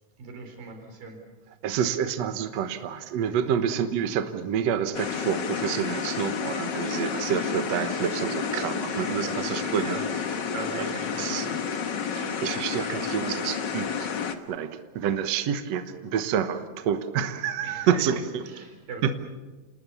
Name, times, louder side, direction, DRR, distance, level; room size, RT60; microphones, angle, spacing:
voice 1, 0.2-1.2 9.0-10.1 10.5-11.5 17.6-19.1, right 3 dB, 85° right, 4 dB, 5.8 m, -40 dB
voice 2, 1.6-10.2 10.8-10.9 11.1-11.5 12.1-14.1 14.5-18.4 19.0-19.1, right 8 dB, 60° right, 8 dB, 2.0 m, -28 dB
sound 1, 4.9-14.4, left 6 dB, 90° left, 0.9 m, -30 dB
29.0 x 19.5 x 7.0 m, 1.3 s
omnidirectional pair, 4.0 m